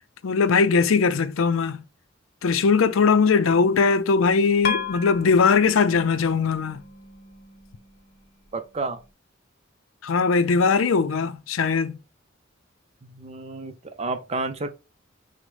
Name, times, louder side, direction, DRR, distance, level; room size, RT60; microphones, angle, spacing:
voice 1, 0.2-1.8 2.4-6.8 10.0-12.0, left 5 dB, 90° left, 0.5 m, -20 dB
sound 1, 4.6-9.1, left 5 dB, 50° left, 0.9 m, -35 dB
voice 2, 8.5-9.0 13.0-14.7, right 3 dB, 30° right, 0.5 m, -31 dB
6.2 x 2.1 x 3.2 m
head